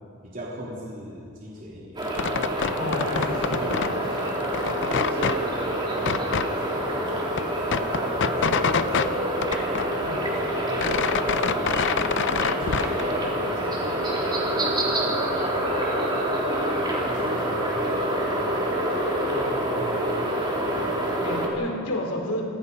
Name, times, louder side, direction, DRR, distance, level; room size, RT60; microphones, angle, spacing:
voice 1, 0.2-2.1 2.9-4.0 4.9-11.9 12.4-15.8 17.1-18.6, equal, 40° right, -5 dB, 3.5 m, -38 dB
sound 1, 2.0-4.0 4.3-5.4 6.0-6.5 6.9-7.0 7.2-9.1 9.4-10.3 10.6-13.0, left 6 dB, 55° left, 0.6 m, -26 dB
sound 2, 2.0-21.5, right 1 dB, 20° right, 3.7 m, -26 dB
voice 2, 2.7-3.4 10.1-10.2 16.9-17.5 19.3-19.9 21.2-22.5, left 1 dB, 90° left, 0 dB, 4.8 m, -32 dB
28.5 x 19.0 x 5.6 m, 2.5 s
head